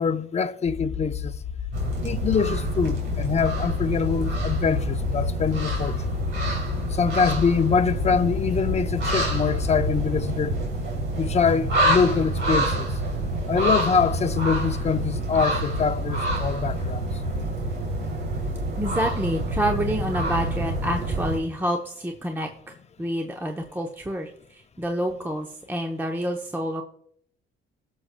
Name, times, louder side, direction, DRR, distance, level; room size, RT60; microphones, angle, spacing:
voice 1, 0.0-1.3 2.0-6.0 6.9-10.6 11.2-13.0 13.5-17.0, left 6 dB, 35° left, 0.6 m, -24 dB
sound 1, 0.6-10.1, left 8 dB, 65° left, 0.7 m, -32 dB
sound 2, 1.7-21.4, right 1 dB, 80° right, 3.0 m, -27 dB
voice 2, 18.8-24.3 24.8-26.8, equal, 10° right, 0.7 m, -28 dB
18.0 x 6.4 x 2.2 m
cardioid pair, 90°, 20 cm